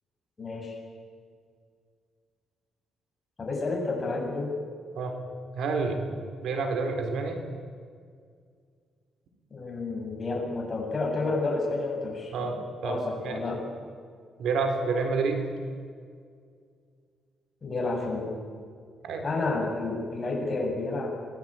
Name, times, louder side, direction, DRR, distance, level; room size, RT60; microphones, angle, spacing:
voice 1, 0.4-0.7 3.4-4.5 9.5-13.6 17.6-18.4 19.2-21.1, left 3 dB, 30° left, 0 dB, 7.7 m, -30 dB
voice 2, 5.5-6.0 6.4-7.4 12.3-13.5 14.4-15.4 19.0-19.3, right 4 dB, 80° right, 6 dB, 3.9 m, -29 dB
24.5 x 19.5 x 9.1 m, 2.1 s
cardioid pair, 110°, 0 cm